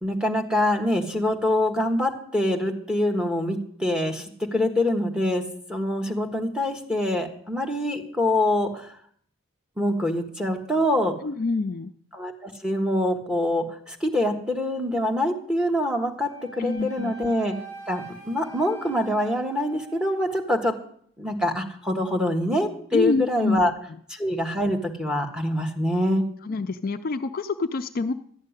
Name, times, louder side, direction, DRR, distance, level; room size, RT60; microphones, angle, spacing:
voice 1, 0.0-5.4 5.7-8.9 9.8-11.1 12.1-17.5 17.9-20.7 21.2-23.7 24.1-26.2, left 1 dB, 5° right, 2 dB, 1.4 m, -25 dB
voice 2, 11.2-11.9 16.6-17.1 22.9-23.7 26.4-28.1, left 3 dB, 45° left, 9 dB, 0.4 m, -26 dB
Wind instrument woodwind instrument, 16.2-20.5, right 4 dB, 80° right, 6.6 m, -43 dB
12.5 x 6.6 x 9.7 m, 0.62 s
head